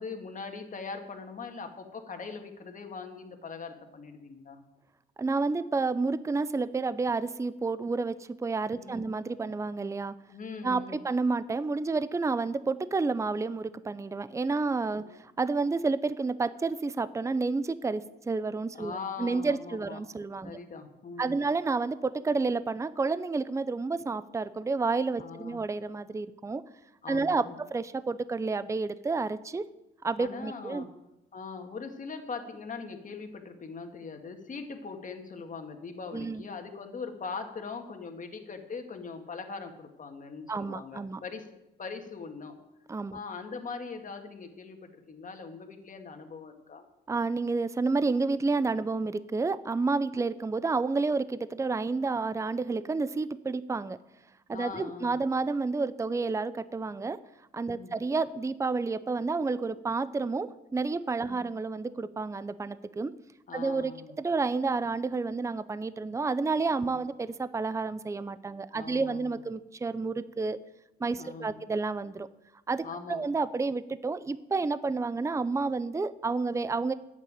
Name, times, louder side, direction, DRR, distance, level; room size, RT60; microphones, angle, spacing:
voice 1, 0.0-4.6 8.7-9.1 10.3-11.0 15.0-15.2 18.7-20.0 20.4-21.4 25.2-25.7 27.0-27.6 30.2-30.9 31.3-41.4 41.8-42.6 43.1-46.8 54.5-55.2 57.7-58.0 61.2-61.5 63.5-64.2 66.8-67.0 68.7-69.4 71.2-71.6 72.8-73.2, left 4 dB, 40° left, 5 dB, 2.0 m, -41 dB
voice 2, 5.2-10.1 10.6-20.6 21.2-26.6 27.1-29.6 30.0-30.9 36.1-36.4 40.5-41.2 42.9-43.2 47.1-54.0 54.5-57.2 57.5-63.1 63.5-70.6 71.0-72.3 72.7-76.9, right 3 dB, 15° right, 15 dB, 0.6 m, -30 dB
11.0 x 8.4 x 9.0 m, 0.93 s
cardioid pair, 90°, 20 cm